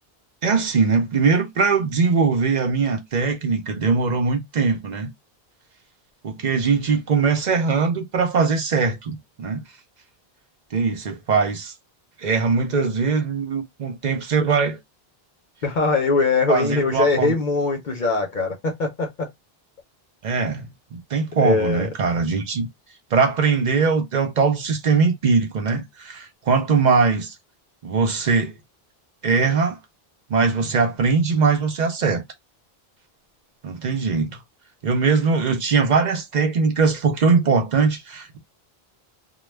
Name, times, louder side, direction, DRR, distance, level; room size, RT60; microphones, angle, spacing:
voice 1, 0.4-5.1 6.2-9.6 10.7-11.7 12.2-14.8 16.5-17.3 20.2-22.7 23.1-27.3 27.8-28.5 29.2-29.8 30.3-32.2 33.6-34.4 34.8-38.4, right 5 dB, 50° right, 0.7 m, -21 dB
voice 2, 15.6-19.3 21.4-21.9, left 3 dB, 55° left, 0.7 m, -22 dB
2.2 x 2.2 x 3.2 m
omnidirectional pair, 1.0 m